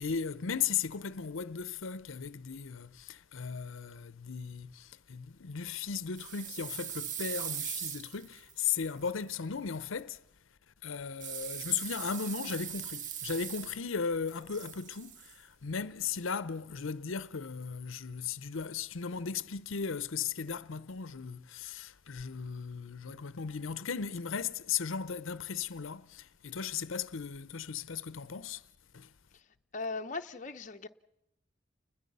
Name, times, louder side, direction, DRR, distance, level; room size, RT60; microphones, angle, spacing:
voice 1, 0.0-10.2 10.8-28.6 28.9-29.1, left 6 dB, 80° left, 0.7 m, -36 dB
sound 1, 6.2-9.2 11.2-14.0 14.3-15.3, right 9 dB, 40° right, 0.7 m, -40 dB
voice 2, 29.7-30.9, left 3 dB, 40° left, 0.8 m, -38 dB
30.0 x 21.0 x 5.5 m
head